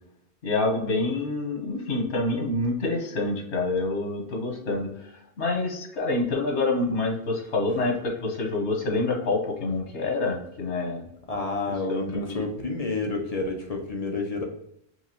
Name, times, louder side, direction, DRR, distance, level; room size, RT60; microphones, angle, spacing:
voice 1, 0.4-4.9 5.4-11.1 11.9-12.3, left 2 dB, 85° left, 1 dB, 1.4 m, -27 dB
voice 2, 11.3-14.4, left 3 dB, 40° left, 1 dB, 0.8 m, -29 dB
4.7 x 3.2 x 3.0 m, 0.75 s
omnidirectional pair, 1.1 m